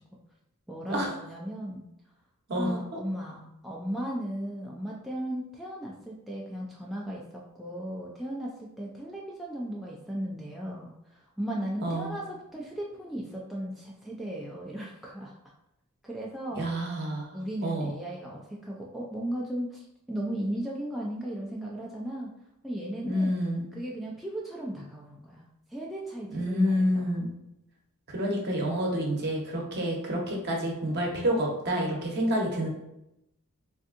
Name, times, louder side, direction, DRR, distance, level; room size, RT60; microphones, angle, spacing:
voice 1, 0.7-1.9 2.5-15.3 16.0-16.6 17.3-22.3 22.6-23.4 23.7-25.4 25.7-27.2, right 1 dB, ahead, -4 dB, 0.3 m, -36 dB
voice 2, 11.8-12.2 16.5-17.3 17.6-17.9 23.0-23.6 26.3-27.3 28.1-32.7, equal, 50° right, -1 dB, 0.8 m, -28 dB
3.4 x 2.6 x 2.5 m, 0.85 s
head